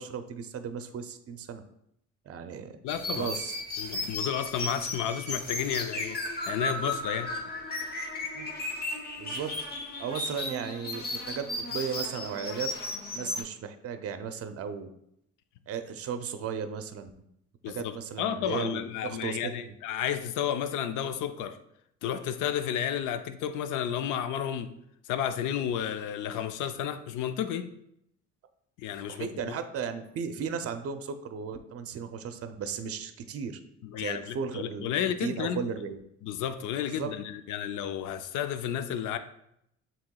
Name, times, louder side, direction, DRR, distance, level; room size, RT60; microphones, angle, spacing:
voice 1, 0.0-1.6 2.3-2.7 3.1-3.6 8.3-8.5 9.2-9.5 10.0-12.7 13.1-14.9 15.7-17.1 17.7-19.7 29.1-33.6 34.0-34.9 35.2-36.0 37.0-37.1, right 6 dB, 50° right, 8 dB, 0.5 m, -35 dB
voice 2, 2.8-3.4 3.8-7.4 17.6-21.6 22.0-24.8 25.0-27.7 28.8-29.5 33.8-35.6 36.2-39.2, left 9 dB, 85° left, 10 dB, 0.5 m, -32 dB
sound 1, 2.9-13.4, left 2 dB, 30° left, 1.0 m, -35 dB
7.5 x 3.0 x 2.3 m, 0.76 s
cardioid pair, 90°, 30 cm